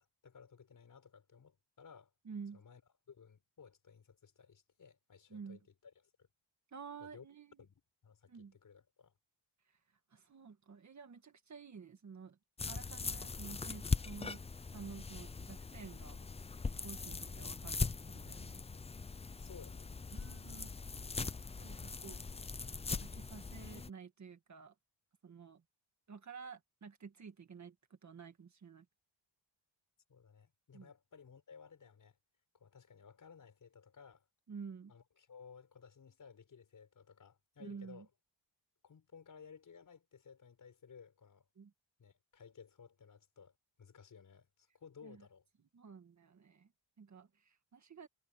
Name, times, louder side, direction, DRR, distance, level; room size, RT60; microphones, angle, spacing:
voice 1, 0.0-2.1 2.5-2.8 3.1-5.9 6.2-6.3 7.0-7.3 7.6-7.7 8.0-9.1 19.4-20.9 30.1-32.2 32.5-34.3 34.9-38.1 38.8-41.5 42.0-45.5, left 6 dB, 40° left, 5.7 m, -58 dB
voice 2, 2.2-2.6 5.3-5.6 6.7-7.6 8.3-8.5 9.7-9.8 10.1-12.4 12.7-14.4 14.7-16.3 16.8-18.6 20.1-20.7 21.6-22.2 23.0-24.7 25.2-25.6 26.1-28.9 30.7-30.9 34.5-34.9 37.6-38.0 41.5-41.7 45.0-45.2 45.7-46.7 47.0-48.1, right 5 dB, 35° right, 1.8 m, -51 dB
sound 1, 12.6-23.9, left 4 dB, 15° left, 0.4 m, -41 dB
wide cardioid pair, 175°, 46 cm